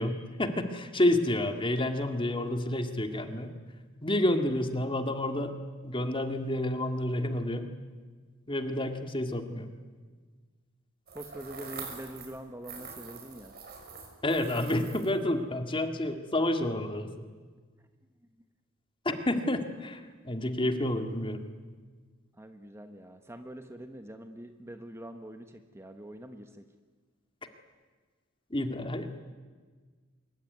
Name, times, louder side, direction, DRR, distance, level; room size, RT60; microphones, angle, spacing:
voice 1, 0.0-3.5 4.0-5.5 5.8-7.7 8.5-9.7 14.2-17.1 19.0-21.5 28.5-29.2, left 1 dB, 25° left, 7 dB, 2.0 m, -29 dB
voice 2, 11.1-13.6 17.8-17.9 22.4-26.6, right 1 dB, 10° right, 7 dB, 1.2 m, -44 dB
sound 1, 11.1-12.4 12.6-15.2, right 5 dB, 50° right, 5.5 m, -44 dB
25.0 x 23.0 x 9.4 m, 1.5 s
head